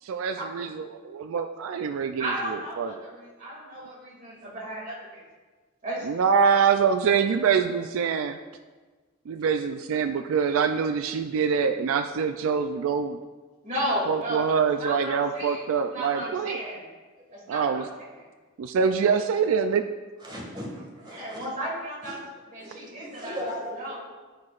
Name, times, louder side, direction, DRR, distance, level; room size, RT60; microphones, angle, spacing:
voice 1, 0.0-2.9 6.1-8.4 9.3-13.2 14.1-16.6 17.5-17.9 18.6-19.9, right 6 dB, 75° right, 7 dB, 0.3 m, -25 dB
voice 2, 2.2-5.2 5.8-6.1 6.4-6.5 13.6-15.6 15.9-16.8 17.3-18.3 21.1-22.2 22.5-23.4 23.8-24.0, right 1 dB, 40° right, -5 dB, 2.4 m, -34 dB
voice 3, 20.2-21.5 22.0-22.2 22.6-24.0, equal, 25° right, -3 dB, 1.8 m, -38 dB
13.5 x 4.8 x 2.4 m, 1.3 s
head